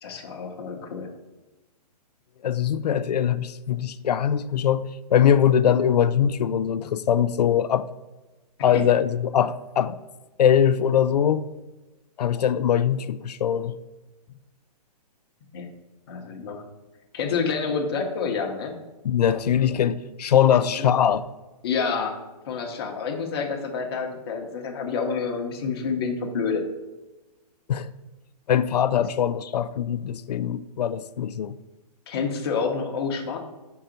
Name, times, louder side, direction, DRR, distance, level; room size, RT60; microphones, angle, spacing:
voice 1, 0.0-1.1 8.7-8.8 15.5-15.7 16.1-16.6 17.1-18.7 20.5-20.9 21.6-22.2 22.5-26.7 32.1-33.4, left 5 dB, 40° left, 0.9 m, -28 dB
voice 2, 2.4-7.9 8.6-10.0 10.4-11.4 12.2-13.7 19.0-21.2 27.7-27.9 28.5-31.5, left 9 dB, 75° left, 0.4 m, -22 dB
5.7 x 3.8 x 5.7 m
hypercardioid pair, 165°, 21 cm